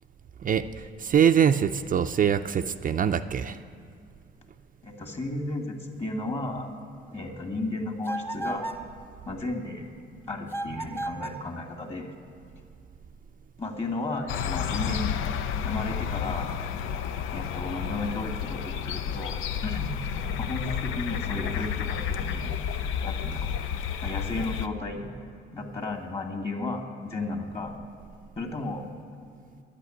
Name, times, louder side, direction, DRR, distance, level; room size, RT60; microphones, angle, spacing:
voice 1, 0.4-3.6, right 8 dB, 45° right, 8 dB, 0.5 m, -23 dB
voice 2, 4.8-6.7 7.1-8.7 9.2-9.9 10.3-12.1 13.6-15.1 15.6-16.6 17.3-19.9 20.4-22.5 23.0-23.5 24.0-25.1 25.5-27.7 28.4-28.8, left 2 dB, 30° left, 3 dB, 2.0 m, -34 dB
sound 1, 8.0-8.9 10.5-11.5, right 2 dB, 10° left, 1.1 m, -34 dB
sound 2, 14.3-24.7, left 8 dB, 90° left, 0.5 m, -31 dB
10.5 x 8.2 x 9.7 m, 2.4 s
cardioid pair, 90°, 20 cm